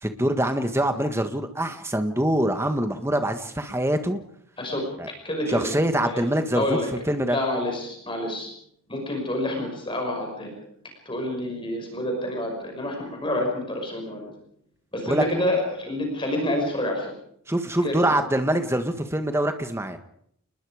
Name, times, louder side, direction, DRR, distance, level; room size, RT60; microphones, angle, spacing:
voice 1, 0.0-4.2 5.0-5.1 5.5-6.8 7.1-7.4 15.1-15.2 17.5-20.0, right 1 dB, 10° right, 7 dB, 1.6 m, -24 dB
voice 2, 4.6-5.7 6.0-6.2 6.5-6.9 7.3-8.5 8.9-10.5 11.1-14.2 14.9-17.1 17.8-18.0, left 1 dB, 20° left, 2 dB, 5.8 m, -28 dB
29.0 x 21.0 x 5.1 m, 0.69 s
head